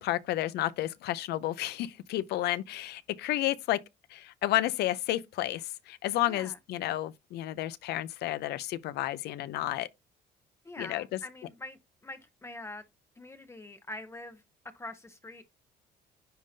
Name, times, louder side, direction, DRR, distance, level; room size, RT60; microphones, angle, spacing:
voice 1, 0.0-3.8 4.1-9.9 10.8-11.2, left 14 dB, 75° left, 0.6 m, -31 dB
voice 2, 6.3-6.6 10.6-12.8 13.2-14.4 14.7-15.4, left 2 dB, 15° left, 0.8 m, -44 dB
10.0 x 3.7 x 2.7 m
cardioid pair, 110°, 17 cm